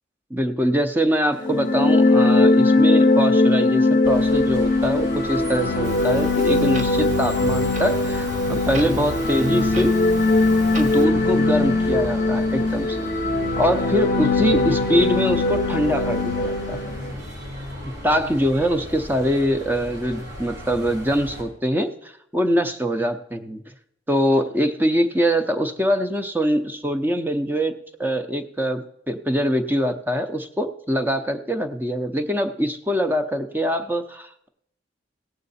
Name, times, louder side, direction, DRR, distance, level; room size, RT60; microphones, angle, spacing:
voice 1, 0.3-9.9 10.8-13.1 13.6-16.9 17.8-23.6 24.1-27.7 28.0-34.5, equal, 10° right, 8 dB, 0.6 m, -23 dB
sound 1, 1.4-17.1, left 2 dB, 50° left, 0.7 m, -20 dB
sound 2, 4.0-21.4, left 1 dB, 80° right, 4.8 m, -34 dB
Clock, 5.8-11.0, right 1 dB, 40° right, 1.0 m, -36 dB
16.5 x 7.6 x 4.2 m, 0.74 s
head